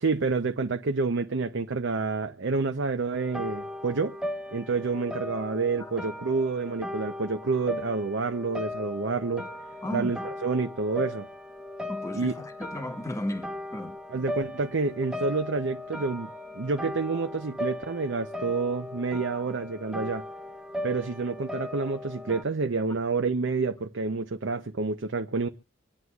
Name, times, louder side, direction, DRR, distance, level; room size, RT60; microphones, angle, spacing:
voice 1, 0.0-4.1 4.5-9.5 9.9-11.3 12.1-12.3 14.1-16.3 16.5-20.2 20.8-25.5, right 4 dB, 60° right, 0.6 m, -28 dB
sound 1, 3.1-22.4, left 1 dB, 5° right, 0.8 m, -38 dB
voice 2, 9.8-10.3 11.9-14.0, left 1 dB, 15° left, 1.2 m, -34 dB
25.0 x 9.5 x 2.3 m
head